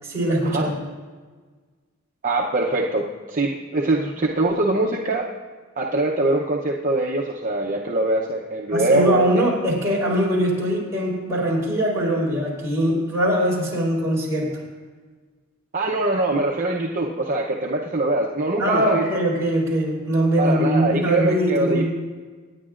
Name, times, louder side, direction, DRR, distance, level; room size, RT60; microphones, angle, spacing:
voice 1, 0.0-0.8 8.7-14.6 18.6-21.8, right 1 dB, 15° right, -6 dB, 4.4 m, -22 dB
voice 2, 2.2-5.3 5.8-9.4 15.7-19.0 20.4-21.8, right 2 dB, 40° right, -1 dB, 0.7 m, -23 dB
27.5 x 9.6 x 2.5 m, 1.5 s
head